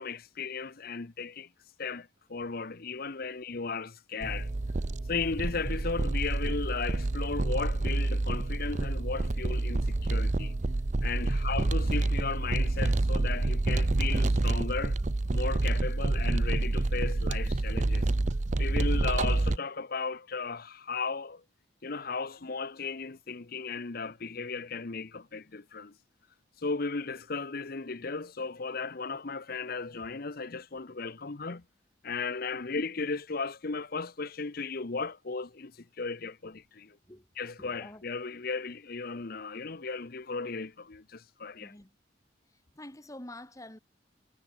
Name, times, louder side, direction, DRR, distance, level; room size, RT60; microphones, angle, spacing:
voice 1, 0.0-1.5 1.8-4.5 5.1-10.5 11.0-15.0 15.3-18.1 18.6-21.4 21.8-25.9 26.6-31.6 32.0-37.0 37.4-41.7, left 4 dB, 50° left, 0.9 m, -36 dB
sound 1, 4.2-19.6, right 2 dB, 35° right, 0.6 m, -28 dB
voice 2, 37.6-38.1 41.6-41.9 42.5-43.8, left 1 dB, 15° left, 2.0 m, -47 dB
head